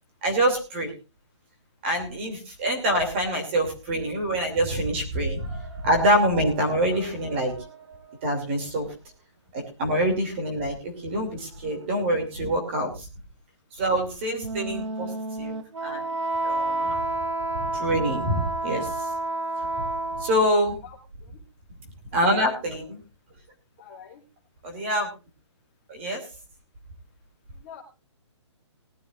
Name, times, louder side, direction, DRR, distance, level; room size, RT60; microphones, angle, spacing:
voice 1, 0.2-0.9 1.8-7.6 8.2-8.9 9.5-13.1 13.7-15.1 15.4-15.6 15.8-16.1 16.4-17.0 17.6-19.1 20.2-20.8 22.1-23.0 24.6-25.1 25.9-26.3, right 1 dB, 25° right, 3 dB, 2.8 m, -25 dB
sound 1, 5.4-12.7, right 4 dB, 55° right, 7.3 m, -49 dB
Wind instrument woodwind instrument, 14.3-20.6, right 2 dB, 75° right, 1.7 m, -30 dB
voice 2, 20.8-21.3 22.1-22.6 23.8-24.2 27.6-27.8, left 6 dB, 20° left, -1 dB, 2.7 m, -44 dB
20.0 x 11.5 x 2.5 m, 0.29 s
hypercardioid pair, 175°, 15 cm